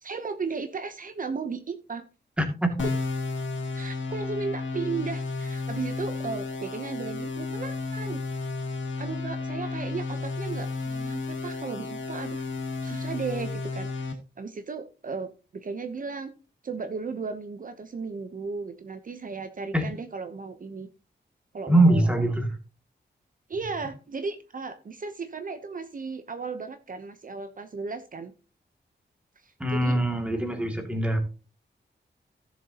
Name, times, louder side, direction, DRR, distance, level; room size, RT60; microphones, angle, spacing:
voice 1, 0.0-2.0 3.7-8.5 9.0-16.3 16.6-20.9 21.5-22.1 23.5-28.3 29.4-30.0, right 4 dB, 45° right, 9 dB, 0.8 m, -35 dB
voice 2, 2.4-2.9 19.7-19.9 21.7-22.5 29.6-31.2, right 1 dB, 5° right, 4 dB, 2.3 m, -23 dB
sound 1, 2.8-14.1, left 3 dB, 80° left, 2.5 m, -32 dB
16.5 x 7.2 x 2.9 m, 0.33 s
wide cardioid pair, 170°, 19 cm